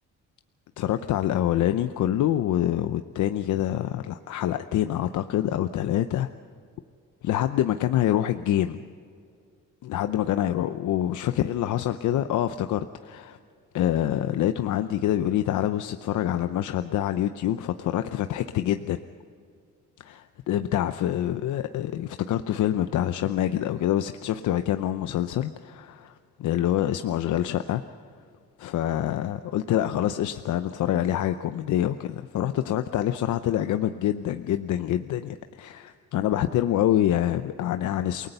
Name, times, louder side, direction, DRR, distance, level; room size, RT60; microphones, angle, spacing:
voice 1, 0.8-6.3 7.2-8.8 9.8-13.4 13.7-19.0 20.0-27.9 28.6-38.3, left 12 dB, 75° left, 9 dB, 0.8 m, -26 dB
28.5 x 18.5 x 5.6 m, 2.3 s
cardioid pair, 90°, 30 cm